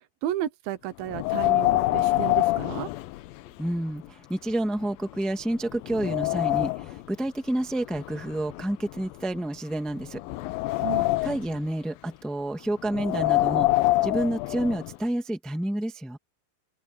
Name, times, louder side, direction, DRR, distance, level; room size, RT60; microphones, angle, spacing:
voice 1, 0.2-2.9 10.8-11.1, right 13 dB, 80° right, 2.8 m, -32 dB
Wind, 1.1-3.7 4.0-4.1 4.8-4.9 5.4-7.0 7.9-9.4 10.0-11.6 12.8-15.0, left 18 dB, 85° left, 2.5 m, -26 dB
voice 2, 3.6-10.2 11.2-13.7 14.0-16.2, right 1 dB, ahead, 1.2 m, -29 dB
open air
omnidirectional pair, 4.2 m